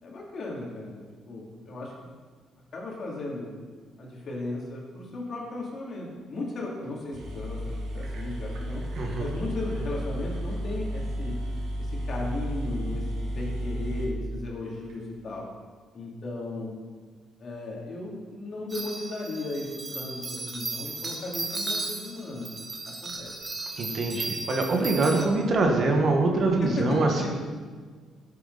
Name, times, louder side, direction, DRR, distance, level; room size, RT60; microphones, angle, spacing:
voice 1, 0.0-1.9 2.7-3.5 4.0-8.8 9.2-11.4 11.8-15.5 15.9-16.7 17.4-22.5 22.9-23.3 26.6-27.3, left 2 dB, 50° left, -3 dB, 3.2 m, -35 dB
sound 1, 6.8-6.9 7.1-14.9, equal, 80° right, 3.1 m, -33 dB
voice 2, 9.0-9.3 23.8-27.3, right 3 dB, 50° right, 1 dB, 1.8 m, -24 dB
sound 2, 18.7-25.3, right 3 dB, 30° right, 1.5 m, -35 dB
14.0 x 8.0 x 4.3 m, 1.5 s
cardioid pair, 110°, 0 cm